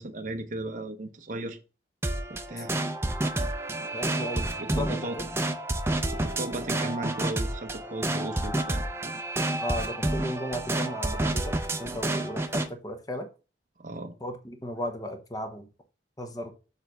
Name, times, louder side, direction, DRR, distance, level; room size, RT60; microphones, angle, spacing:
voice 1, 0.0-1.6 2.3-2.7 4.3-5.2 6.1-9.2 13.8-14.1, right 2 dB, 45° right, 0.8 m, -36 dB
sound 1, 2.0-12.7, right 1 dB, 15° right, 0.5 m, -29 dB
voice 2, 3.9-4.4 4.8-5.3 9.6-13.3 14.2-15.6 16.2-16.5, equal, 20° left, 1.0 m, -35 dB
7.0 x 3.3 x 6.2 m
head